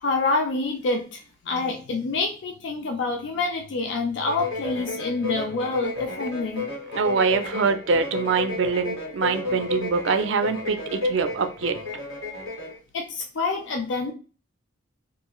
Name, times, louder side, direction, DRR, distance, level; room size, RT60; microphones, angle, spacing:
voice 1, 0.0-1.2 1.5-6.7 12.9-14.1, left 3 dB, 60° left, 2 dB, 0.4 m, -27 dB
sound 1, 4.2-12.8, left 3 dB, 80° left, 1.3 m, -31 dB
voice 2, 6.9-11.7, right 5 dB, 65° right, 9 dB, 0.4 m, -24 dB
2.5 x 2.3 x 2.9 m, 0.35 s
head